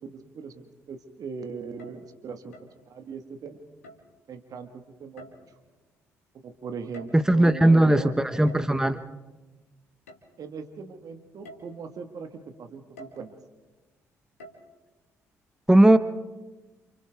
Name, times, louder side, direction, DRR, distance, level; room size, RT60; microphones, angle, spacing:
voice 1, 0.0-2.5 2.9-3.6 4.3-5.3 6.4-8.1 10.4-13.4, right 5 dB, 50° right, 6 dB, 1.8 m, -39 dB
sound 1, 1.6-2.1 2.5-2.8 3.8-4.2 5.2-5.7 6.7-7.4 8.5-8.8 10.1-10.2 10.8-10.9 11.4-11.8 13.0-13.3 14.4-14.6, equal, 85° left, 1.8 m, -48 dB
voice 2, 7.1-9.0 15.7-16.0, right 1 dB, 10° right, 11 dB, 1.2 m, -18 dB
29.5 x 28.0 x 3.6 m, 1.2 s
figure-of-eight pair, 45°, 8 cm